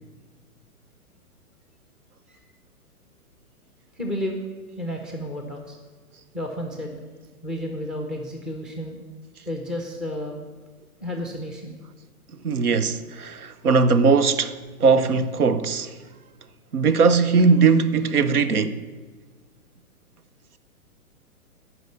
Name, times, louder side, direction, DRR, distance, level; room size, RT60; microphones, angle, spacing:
voice 1, 3.9-4.4 4.8-5.8 6.3-7.0 7.4-9.0 9.5-10.4 11.0-11.7, equal, ahead, 0.4 m, -31 dB
voice 2, 12.4-15.9 16.7-18.8, right 4 dB, 80° right, 0.8 m, -19 dB
10.5 x 5.6 x 8.3 m
figure-of-eight pair, 120°, 44 cm